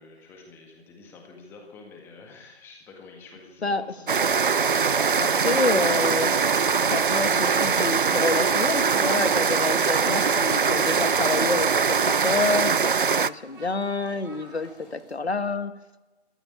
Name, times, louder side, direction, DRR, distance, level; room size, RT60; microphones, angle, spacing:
voice 1, 0.0-4.4 7.5-7.9, left 4 dB, 5° left, 2 dB, 1.8 m, -48 dB
sound 1, 4.1-13.3, right 6 dB, 50° right, 0.6 m, -22 dB
voice 2, 5.1-6.3 6.9-12.9 13.2-15.7, left 3 dB, 70° left, 12 dB, 1.7 m, -28 dB
sound 2, 6.2-15.1, left 3 dB, 40° left, 6.3 m, -56 dB
Speech, 13.1-14.7, right 4 dB, 20° right, 2.8 m, -50 dB
20.5 x 14.0 x 10.0 m, 1.1 s
figure-of-eight pair, 150°, 34 cm